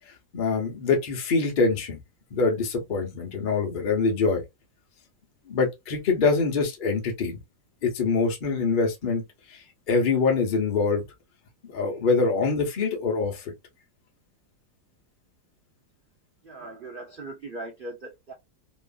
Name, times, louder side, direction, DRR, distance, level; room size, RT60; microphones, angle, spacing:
voice 1, 0.3-2.0 2.3-4.4 5.5-7.4 7.8-9.2 9.5-11.0 11.6-13.5, left 4 dB, 55° left, 0.5 m, -24 dB
voice 2, 16.4-18.3, right 2 dB, 90° right, 0.4 m, -39 dB
2.9 x 2.4 x 2.3 m
omnidirectional pair, 1.9 m